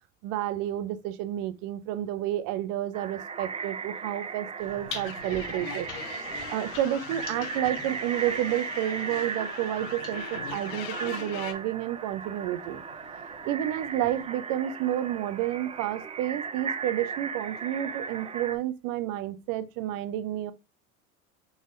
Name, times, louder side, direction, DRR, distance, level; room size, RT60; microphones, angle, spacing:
voice 1, 0.2-5.9 6.5-12.8 13.4-20.5, right 12 dB, 55° right, 0.7 m, -30 dB
sound 1, 2.9-18.6, right 6 dB, 15° right, 0.4 m, -37 dB
sound 2, 4.6-10.6 11.5-14.2, left 4 dB, 45° left, 1.7 m, -46 dB
sound 3, 5.0-11.5, left 9 dB, 65° left, 0.9 m, -41 dB
4.8 x 3.9 x 2.5 m
hypercardioid pair, 80°, 42 cm